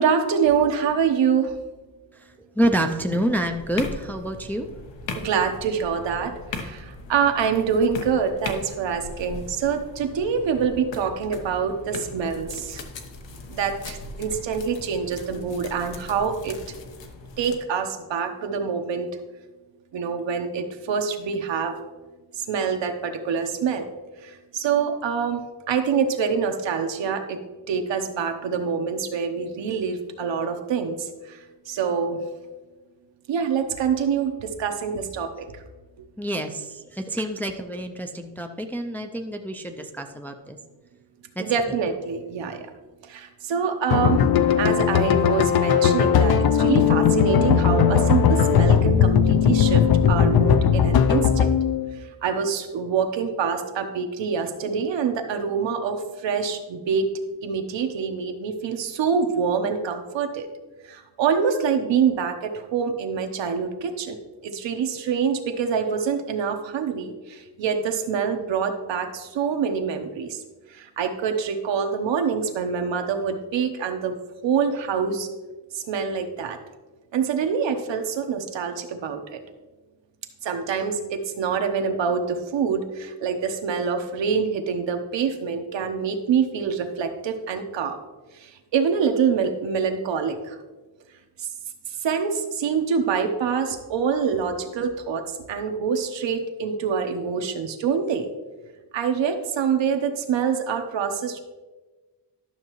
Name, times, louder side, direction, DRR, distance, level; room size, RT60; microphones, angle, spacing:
voice 1, 0.0-1.6 5.1-12.8 13.5-16.6 17.4-19.1 19.9-21.8 22.3-23.9 24.2-25.4 25.7-27.4 27.7-31.4 31.7-32.2 33.3-35.6 41.4-42.7 43.0-44.2 44.6-51.6 51.9-57.1 57.4-60.5 60.8-64.2 64.4-70.4 70.7-74.2 74.4-75.3 75.7-76.6 77.1-79.4 80.4-88.0 88.3-90.6 91.4-91.5 92.0-98.3 98.9-101.4, right 6 dB, 85° right, 6 dB, 1.0 m, -25 dB
voice 2, 2.6-4.7 36.2-40.6 41.4-41.5, right 1 dB, 5° left, 5 dB, 0.3 m, -27 dB
sound 1, 3.3-17.6, left 3 dB, 85° left, 1.0 m, -39 dB
sound 2, 43.9-52.0, left 7 dB, 60° left, 0.5 m, -18 dB
12.0 x 6.6 x 3.1 m, 1.2 s
wide cardioid pair, 160°, 43 cm